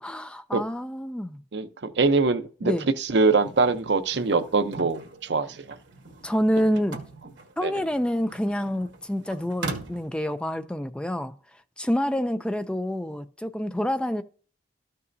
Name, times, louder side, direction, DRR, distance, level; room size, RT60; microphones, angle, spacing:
voice 1, 0.0-1.4 2.6-2.8 6.2-7.0 7.6-11.3 11.8-14.2, equal, 5° left, 0.4 m, -27 dB
voice 2, 1.5-5.6 7.6-7.7, right 3 dB, 70° right, 0.7 m, -23 dB
sound 1, 3.2-10.1, right 3 dB, 85° right, 1.5 m, -41 dB
13.5 x 5.5 x 2.6 m
head